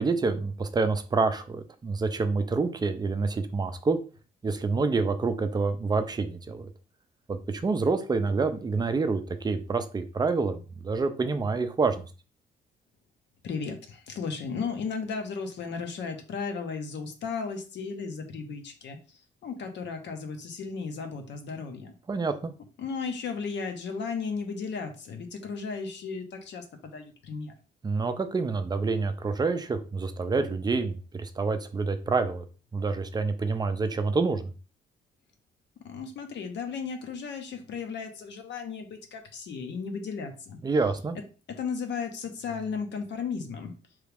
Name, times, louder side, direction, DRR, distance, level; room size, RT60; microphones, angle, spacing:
voice 1, 0.0-4.0 4.4-6.7 7.3-12.0 22.1-22.5 27.8-32.4 32.7-34.5 40.6-41.2, right 4 dB, 20° right, 9 dB, 0.4 m, -27 dB
voice 2, 13.4-21.9 22.8-27.5 35.8-40.6 41.5-43.7, left 5 dB, 65° left, 6 dB, 0.8 m, -35 dB
3.1 x 2.4 x 3.3 m, 0.36 s
cardioid pair, 90°, 20 cm